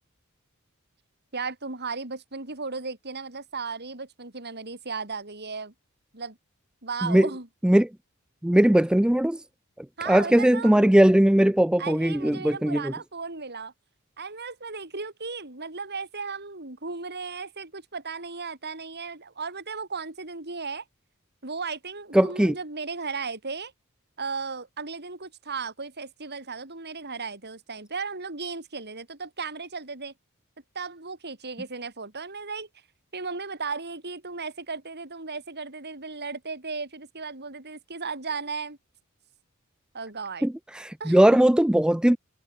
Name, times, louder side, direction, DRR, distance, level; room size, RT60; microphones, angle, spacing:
voice 1, 1.3-5.7 6.1-6.4 6.8-7.5 10.0-11.0 11.8-13.7 14.2-20.8 21.4-23.7 24.2-30.1 30.8-32.7 33.1-38.8 39.9-40.5 41.0-41.2, right 4 dB, 50° right, 5.2 m, -35 dB
voice 2, 8.4-9.4 9.8-12.9 22.1-22.5 40.4-42.2, right 1 dB, 5° right, 0.3 m, -20 dB
head